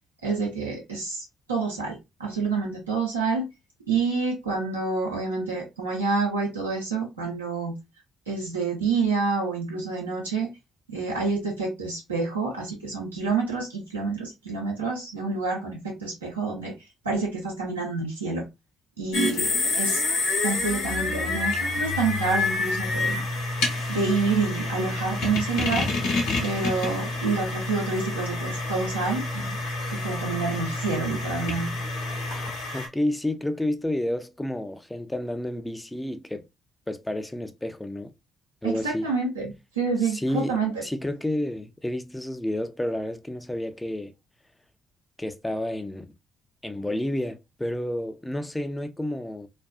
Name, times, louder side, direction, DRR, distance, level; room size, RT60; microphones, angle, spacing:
voice 1, 0.2-3.4 3.9-7.8 8.3-10.5 10.9-16.7 17.0-18.4 19.0-19.5 19.8-20.0 20.4-23.2 23.9-25.9 26.4-29.6 29.9-31.8 38.6-40.9, right 4 dB, 90° right, 0.7 m, -28 dB
sound 1, 19.1-32.9, left 2 dB, 70° left, 0.7 m, -28 dB
voice 2, 32.7-36.4 36.9-38.1 38.6-39.1 40.1-44.1 45.2-46.1 46.6-49.5, left 1 dB, 10° left, 0.4 m, -30 dB
2.4 x 2.3 x 2.2 m
figure-of-eight pair, 45°, 0 cm